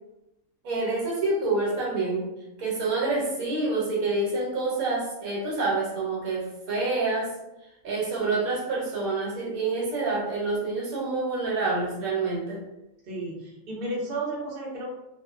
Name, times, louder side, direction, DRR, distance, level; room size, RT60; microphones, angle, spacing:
voice 1, 0.6-2.3 2.6-7.3 7.8-12.6, right 3 dB, 80° right, -4 dB, 1.2 m, -27 dB
voice 2, 13.1-14.9, right 2 dB, 50° right, -4 dB, 0.8 m, -33 dB
2.6 x 2.1 x 2.4 m, 0.91 s
omnidirectional pair, 1.5 m